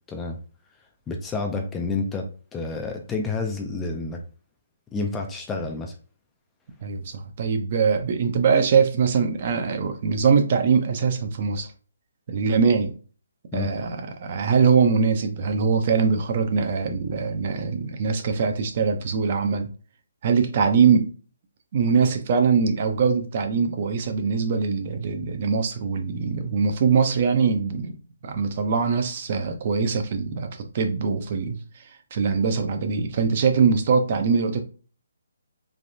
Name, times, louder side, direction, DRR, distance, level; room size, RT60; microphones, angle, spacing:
voice 1, 1.1-4.2 4.9-5.9 13.5-13.7, left 3 dB, 10° left, 0.3 m, -29 dB
voice 2, 6.8-11.7 12.3-12.9 13.5-19.7 20.2-21.1 21.7-28.0 28.2-31.6 32.1-34.6, right 5 dB, 40° right, 0.5 m, -22 dB
3.3 x 2.5 x 2.6 m
hypercardioid pair, 160°, 0 cm